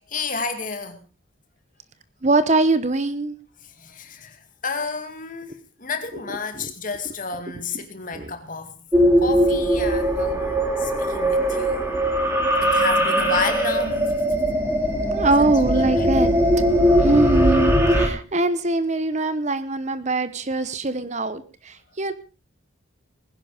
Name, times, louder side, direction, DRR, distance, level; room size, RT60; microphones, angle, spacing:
voice 1, 0.1-1.0 3.6-8.8 9.2-12.0 12.6-14.0 15.4-16.1, left 4 dB, 40° left, 7 dB, 2.3 m, -31 dB
voice 2, 2.2-3.4 6.5-6.7 8.1-8.3 12.6-12.8 15.1-16.3 17.0-22.1, right 2 dB, 35° right, 13 dB, 0.9 m, -22 dB
sound 1, 8.9-18.1, equal, 10° right, 3.0 m, -20 dB
20.0 x 10.5 x 5.0 m, 0.35 s
head